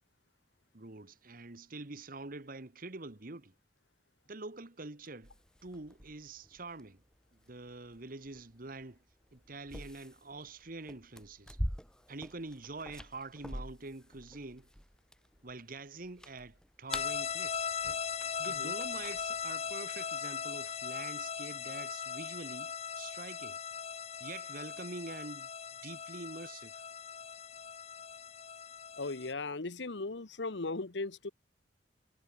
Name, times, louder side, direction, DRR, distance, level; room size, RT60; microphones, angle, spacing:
voice 1, 0.7-3.5 4.3-5.3 5.6-7.0 7.5-9.0 9.3-11.6 12.1-14.7 15.4-17.7 18.4-23.6 24.2-25.5 25.8-26.9, right 3 dB, 50° right, 1.5 m, -45 dB
sound 1, 5.2-19.7, equal, 5° left, 3.6 m, -46 dB
sound 2, 16.9-29.3, left 7 dB, 35° left, 0.8 m, -39 dB
voice 2, 29.0-31.3, left 3 dB, 85° left, 1.2 m, -37 dB
head